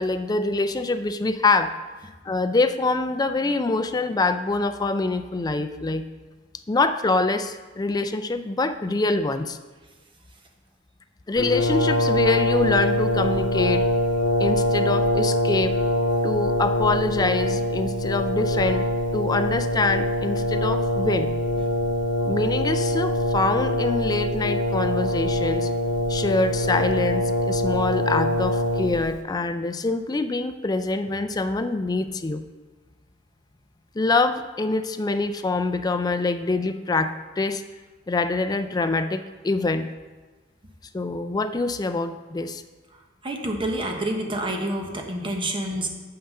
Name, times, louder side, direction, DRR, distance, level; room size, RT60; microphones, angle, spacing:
voice 1, 0.0-1.7 2.3-6.1 6.7-9.6 11.3-13.8 14.4-15.8 16.2-18.9 19.1-21.3 22.3-25.7 26.1-32.4 34.0-37.6 38.1-39.9 40.9-42.6, left 3 dB, 20° left, 9 dB, 0.4 m, -25 dB
Brass instrument, 11.4-29.2, left 1 dB, 80° left, 1.1 m, -24 dB
voice 2, 43.2-45.9, right 1 dB, 30° right, 2 dB, 1.0 m, -28 dB
7.6 x 5.8 x 5.5 m, 1.3 s
head